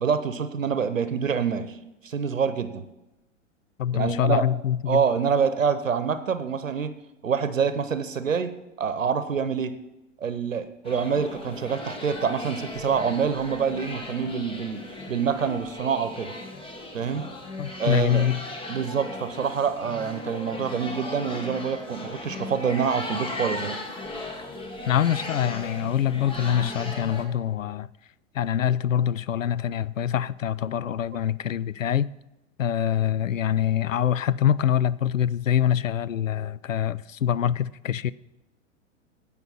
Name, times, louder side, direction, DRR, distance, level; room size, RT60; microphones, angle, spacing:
voice 1, 0.0-1.8 2.0-2.8 3.9-4.5 4.9-6.9 7.2-8.5 8.8-9.7 10.2-14.8 15.1-16.3 16.9-17.2 17.8-18.3 18.7-23.8, right 6 dB, 80° right, 1.0 m, -26 dB
voice 2, 3.8-5.0 17.6-18.4 24.9-27.9 28.3-32.1 32.6-38.1, left 9 dB, 80° left, 0.5 m, -24 dB
sound 1, 10.8-27.2, left 2 dB, 15° left, 1.4 m, -37 dB
17.0 x 5.7 x 4.3 m
figure-of-eight pair, 95°, 39 cm